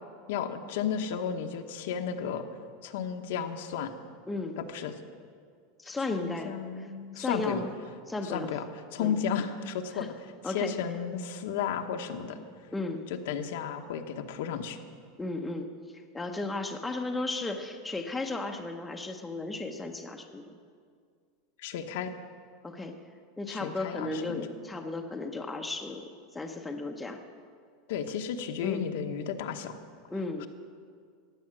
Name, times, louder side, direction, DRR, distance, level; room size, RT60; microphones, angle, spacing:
voice 1, 0.3-2.4 2.8-3.9 4.6-4.9 6.1-7.6 8.2-8.6 8.9-10.1 10.4-12.4 13.1-14.8 21.6-22.1 23.5-24.5 27.9-29.8 30.4-30.5, left 7 dB, 70° left, 5 dB, 1.1 m, -33 dB
voice 2, 4.3-4.6 5.8-6.5 6.8-6.9 7.2-7.7 8.1-8.5 9.0-9.2 9.9-10.1 10.4-10.7 12.7-13.0 15.2-15.7 16.1-20.5 22.6-23.0 23.4-26.1 26.3-27.2 28.6-28.9 30.1-30.5, left 2 dB, 5° left, 3 dB, 0.8 m, -34 dB
15.0 x 9.4 x 7.5 m, 2.1 s
supercardioid pair, 165°, 0 cm